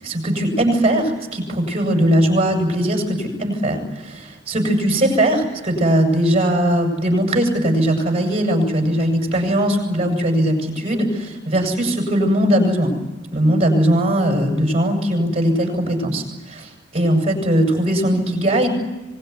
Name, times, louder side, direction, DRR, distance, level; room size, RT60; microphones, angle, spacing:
voice 1, 0.0-12.9 13.3-18.7, right 1 dB, 30° right, 2 dB, 7.8 m, -19 dB
26.0 x 20.5 x 9.8 m, 1.1 s
head